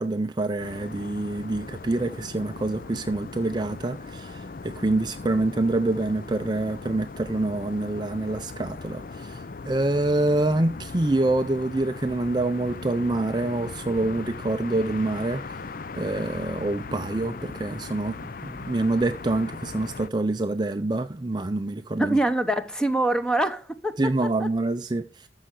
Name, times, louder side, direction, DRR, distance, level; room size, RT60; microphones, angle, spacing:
voice 1, 0.0-22.2 24.0-25.3, right 2 dB, 25° right, 0.4 m, -26 dB
sound 1, 0.6-20.1, left 4 dB, 45° left, 0.5 m, -39 dB
voice 2, 22.0-24.0 24.4-24.5, right 1 dB, 5° left, 0.9 m, -24 dB
13.5 x 5.6 x 6.5 m
head